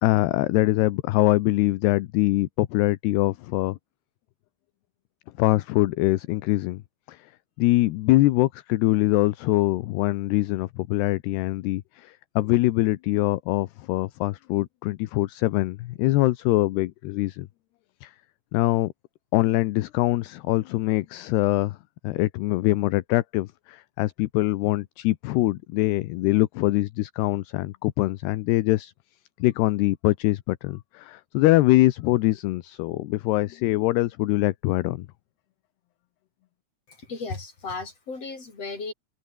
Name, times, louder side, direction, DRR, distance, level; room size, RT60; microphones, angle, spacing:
voice 1, 0.0-3.8 5.4-6.8 7.1-7.3 7.6-17.5 18.0-18.1 18.5-18.9 19.3-21.8 22.0-28.9 29.4-35.1, left 18 dB, 75° left, 2.8 m, -23 dB
voice 2, 36.9-38.9, left 3 dB, 35° left, 7.3 m, -35 dB
omnidirectional pair, 5.0 m